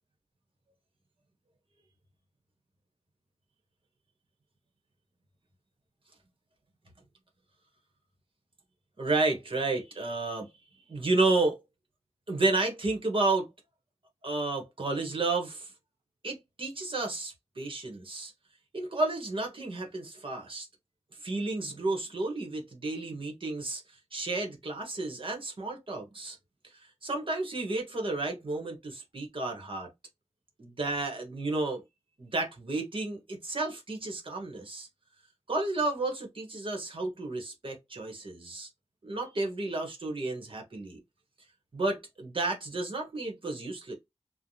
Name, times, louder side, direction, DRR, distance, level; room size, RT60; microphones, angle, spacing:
voice 1, 9.0-10.5 10.9-11.6 12.3-13.5 14.2-15.7 16.2-18.3 18.7-20.7 21.2-23.8 24.1-26.4 27.0-29.9 30.6-31.8 32.2-34.9 35.5-38.7 39.0-41.0 41.7-43.9, right 2 dB, 50° right, 1.0 m, -31 dB
3.2 x 2.1 x 2.7 m
wide cardioid pair, 90°, 11 cm